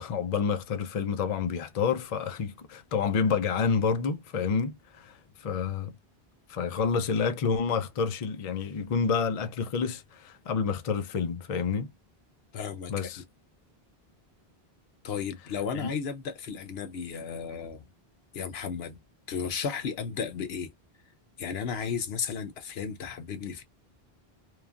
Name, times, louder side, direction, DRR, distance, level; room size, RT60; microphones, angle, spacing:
voice 1, 0.0-6.0 6.5-11.9 12.9-13.2 15.7-15.9, left 6 dB, 50° left, 0.4 m, -29 dB
voice 2, 12.5-13.1 15.0-17.9 18.3-19.0 19.3-20.7 21.4-23.6, left 6 dB, 80° left, 1.0 m, -34 dB
3.1 x 2.3 x 2.3 m
omnidirectional pair, 1.0 m